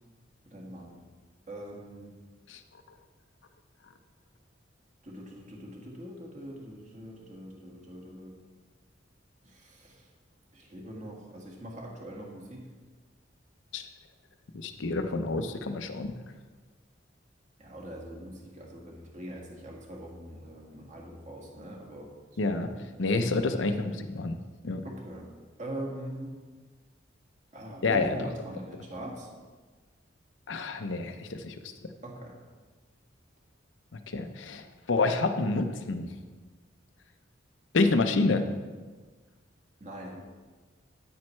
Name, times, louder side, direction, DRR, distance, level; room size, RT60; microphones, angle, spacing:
voice 1, 0.5-1.0 1.5-2.1 5.0-8.4 9.4-10.1 10.5-12.7 17.6-22.1 22.4-22.6 24.8-25.3 25.6-26.3 27.5-29.3 32.0-32.4 39.8-40.2, right 1 dB, 40° right, -1 dB, 1.8 m, -42 dB
voice 2, 14.5-16.2 22.4-22.7 23.0-24.4 24.6-24.8 27.8-28.3 30.5-31.6 31.8-31.9 33.9-36.1 37.7-38.4, left 3 dB, 85° left, 8 dB, 0.7 m, -28 dB
9.5 x 8.8 x 3.2 m, 1.4 s
head